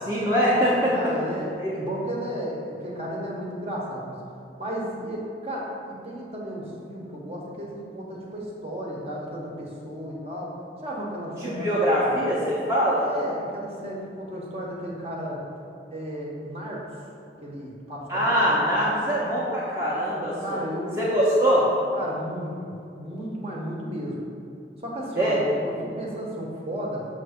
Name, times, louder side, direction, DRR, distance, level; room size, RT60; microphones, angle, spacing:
voice 1, 0.1-1.1 11.4-13.1 18.1-20.6 21.0-21.7 25.1-25.4, equal, 15° right, -8 dB, 0.8 m, -23 dB
voice 2, 0.9-4.1 4.6-12.1 13.0-15.4 15.9-16.9 17.4-18.5 20.4-21.0 22.0-24.2 24.8-27.1, equal, 35° right, -3 dB, 1.1 m, -34 dB
6.4 x 3.2 x 5.8 m, 2.6 s
head